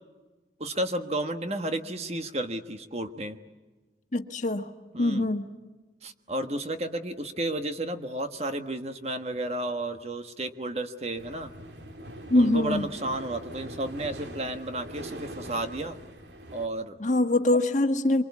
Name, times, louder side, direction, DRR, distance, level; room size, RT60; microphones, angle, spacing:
voice 1, 0.6-3.4 4.9-5.3 6.0-11.5 12.3-16.0 16.5-17.0, right 1 dB, 35° right, 7 dB, 1.4 m, -32 dB
voice 2, 4.1-4.7 5.0-5.4 12.3-12.9 17.0-18.2, left 2 dB, 45° left, 6 dB, 1.5 m, -23 dB
sound 1, 11.2-16.7, right 1 dB, 80° right, 2.3 m, -42 dB
25.5 x 24.5 x 8.4 m, 1.3 s
head